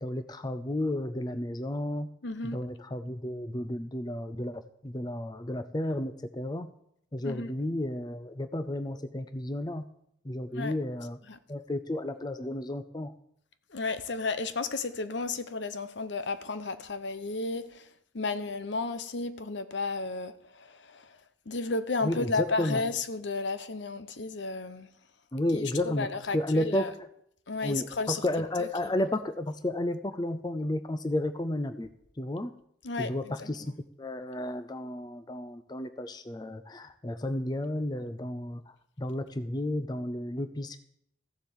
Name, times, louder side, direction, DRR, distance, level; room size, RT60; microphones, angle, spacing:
voice 1, 0.0-2.1 2.4-6.7 7.1-9.8 10.2-11.2 11.5-13.1 22.0-22.8 25.3-26.1 26.3-27.1 27.6-31.9 32.2-32.5 33.0-40.8, left 1 dB, 20° left, 0.5 m, -32 dB
voice 2, 2.2-2.7 7.2-7.5 10.5-10.7 11.3-11.4 13.7-24.9 25.5-26.9 27.5-28.2 28.6-28.7 32.8-33.5, left 3 dB, 75° left, 0.9 m, -33 dB
14.5 x 7.5 x 7.1 m
head